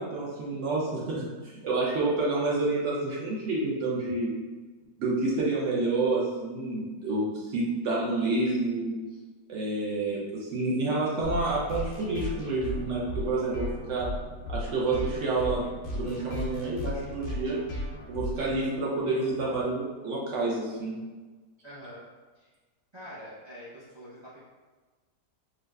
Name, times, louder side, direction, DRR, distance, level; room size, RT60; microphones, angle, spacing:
voice 1, 0.0-4.3 5.0-9.0 9.5-14.1 14.5-15.7 15.9-17.6 18.1-20.9, right 2 dB, 65° right, -4 dB, 0.8 m, -29 dB
sound 1, 11.2-19.6, left 1 dB, 80° left, 0.5 m, -36 dB
voice 2, 21.6-22.0 22.3-22.5 22.9-24.4, equal, 40° right, -10 dB, 0.4 m, -45 dB
3.9 x 2.5 x 2.2 m, 1.3 s
omnidirectional pair, 1.8 m